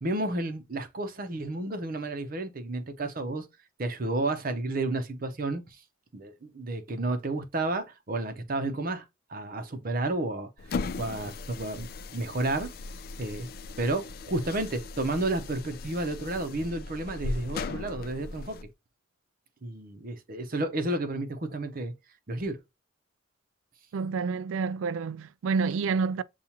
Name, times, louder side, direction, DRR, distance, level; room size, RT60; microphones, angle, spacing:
voice 1, 0.0-3.5 3.8-5.8 6.1-10.5 11.0-12.7 13.2-13.5 13.8-18.6 19.6-21.9 22.3-22.6, right 2 dB, 45° right, 0.7 m, -31 dB
sound 1, 10.6-18.7, left 3 dB, 50° left, 0.3 m, -38 dB
voice 2, 23.9-26.2, right 5 dB, 90° right, 0.3 m, -28 dB
7.0 x 2.4 x 2.8 m
head